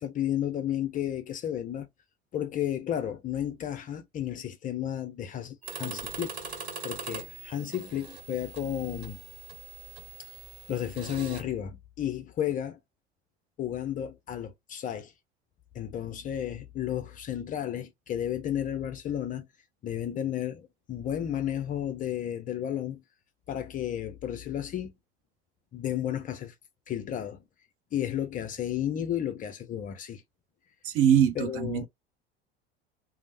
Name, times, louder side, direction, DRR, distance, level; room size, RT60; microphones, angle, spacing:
voice 1, 0.0-1.9 2.3-9.2 10.2-10.3 10.7-12.8 13.6-15.1 15.7-19.5 19.8-23.0 23.5-24.9 25.7-26.5 26.9-27.4 27.9-30.2 31.4-31.9, left 10 dB, 25° left, 0.5 m, -33 dB
sound 1, 5.6-11.4, right 5 dB, 70° right, 1.0 m, -42 dB
voice 2, 30.8-31.9, right 9 dB, 40° right, 0.8 m, -23 dB
3.2 x 2.0 x 2.5 m
figure-of-eight pair, 75°, 32 cm